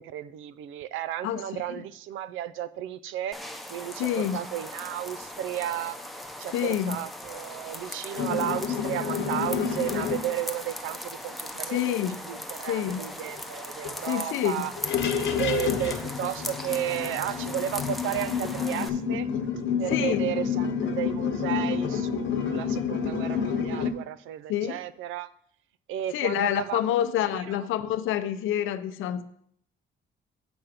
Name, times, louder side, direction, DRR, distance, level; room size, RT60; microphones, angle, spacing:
voice 1, 0.0-3.4 3.7-6.0 6.4-11.8 12.3-14.7 15.4-19.3 19.8-25.3 25.9-27.6, right 12 dB, 90° right, 0.5 m, -33 dB
voice 2, 1.2-1.6 4.0-4.4 6.5-7.0 11.7-12.2 12.6-13.0 14.0-14.6 19.9-20.2 24.5-24.8 26.1-29.2, left 11 dB, 85° left, 0.6 m, -27 dB
sound 1, 3.3-18.9, left 1 dB, ahead, 0.8 m, -39 dB
sound 2, 8.2-10.3 12.9-13.0 13.3-13.4 13.8-13.9 14.6-23.9, left 7 dB, 70° left, 1.0 m, -29 dB
7.1 x 5.9 x 5.1 m
cardioid pair, 90°, 20 cm